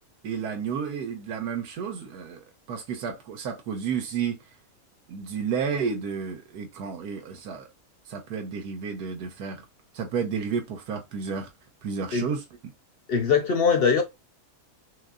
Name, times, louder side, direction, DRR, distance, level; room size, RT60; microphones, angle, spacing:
voice 1, 0.2-4.4 5.1-7.7 8.1-9.6 9.9-11.5 11.8-12.4, right 6 dB, 90° right, 1.4 m, -31 dB
voice 2, 13.1-14.0, left 6 dB, 55° left, 0.6 m, -21 dB
6.3 x 2.2 x 2.4 m
omnidirectional pair, 1.6 m